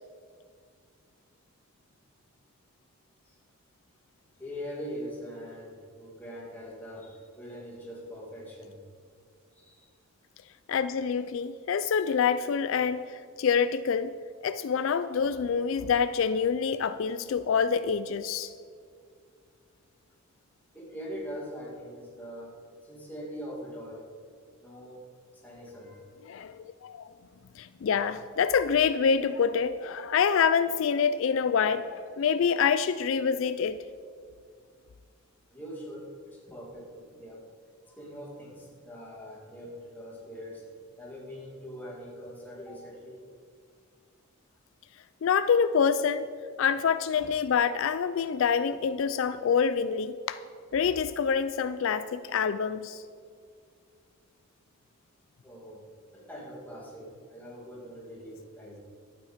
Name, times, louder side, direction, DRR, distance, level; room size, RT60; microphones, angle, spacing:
voice 1, 4.4-8.8 9.5-9.9 11.9-12.0 20.7-22.6 22.8-24.1 24.6-25.0 25.3-26.0 35.5-37.5 37.9-40.7 41.0-43.2 55.4-58.8, equal, 10° left, -3 dB, 2.0 m, -42 dB
voice 2, 10.7-14.2 14.4-18.5 26.3-27.1 27.6-33.8 45.2-46.3 46.6-50.4 50.7-53.0, left 6 dB, 65° left, 13 dB, 0.3 m, -26 dB
12.0 x 9.1 x 5.0 m, 2.2 s
head